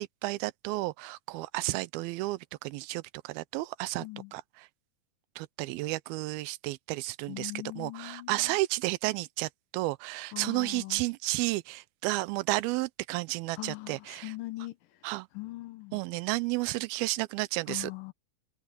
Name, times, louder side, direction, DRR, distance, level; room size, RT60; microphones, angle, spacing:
voice 1, 0.0-4.1 4.3-4.7 5.4-14.3 15.0-15.3 15.9-17.9, right 20 dB, 85° right, 2.4 m, -32 dB
voice 2, 4.0-4.3 7.3-8.6 10.3-11.0 13.5-14.8 15.3-16.0 17.7-18.1, left 20 dB, 75° left, 2.5 m, -40 dB
omnidirectional pair, 4.3 m